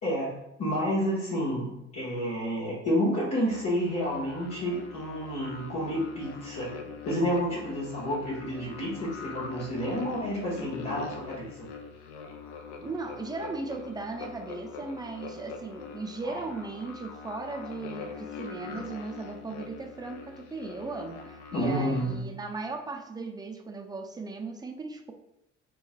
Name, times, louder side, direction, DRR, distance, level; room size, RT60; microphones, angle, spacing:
voice 1, 0.0-6.7 7.0-11.7 16.2-16.4 21.5-22.2, equal, 40° left, -9 dB, 1.4 m, -30 dB
sound 1, 3.5-22.2, left 5 dB, 70° left, 0.6 m, -43 dB
voice 2, 12.8-25.1, right 3 dB, 10° right, 4 dB, 0.5 m, -37 dB
4.4 x 3.0 x 2.3 m, 0.83 s
figure-of-eight pair, 50°, 38 cm